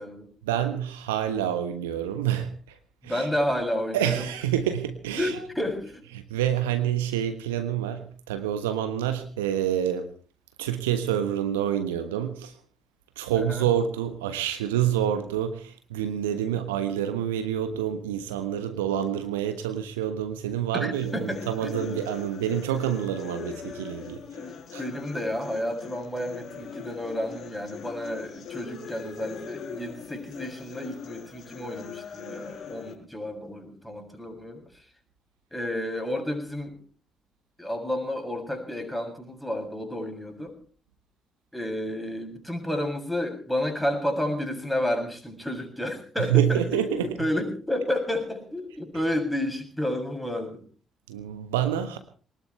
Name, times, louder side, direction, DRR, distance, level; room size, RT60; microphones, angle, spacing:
voice 1, 0.5-2.5 3.1-3.2 3.9-5.3 6.3-10.1 10.6-12.5 13.2-24.2 24.7-24.8 46.3-47.1 51.1-52.0, right 10 dB, 80° right, 9 dB, 1.3 m, -27 dB
voice 2, 3.0-4.3 5.2-6.0 13.4-13.7 20.7-21.9 24.3-34.8 35.5-36.8 37.6-40.5 41.5-50.6, left 1 dB, 5° left, 4 dB, 7.0 m, -31 dB
sound 1, 20.9-32.9, left 7 dB, 55° left, 5.0 m, -41 dB
22.5 x 19.5 x 3.3 m, 0.40 s
figure-of-eight pair, 45°, 0 cm